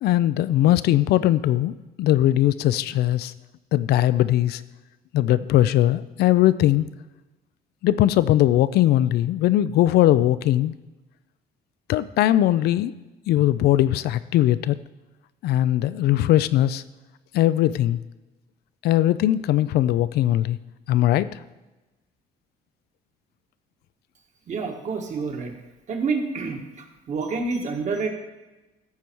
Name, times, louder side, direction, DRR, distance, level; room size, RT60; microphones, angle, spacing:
voice 1, 0.0-3.3 3.7-4.6 5.1-6.8 7.8-10.8 11.9-12.9 13.3-14.8 15.4-16.8 17.3-18.0 18.8-20.6 20.9-21.3, left 13 dB, 70° left, 16 dB, 0.5 m, -20 dB
voice 2, 24.5-25.5 25.9-28.1, right 4 dB, 45° right, 3 dB, 1.6 m, -28 dB
14.0 x 4.9 x 4.5 m, 1.1 s
cardioid pair, 110°, 17 cm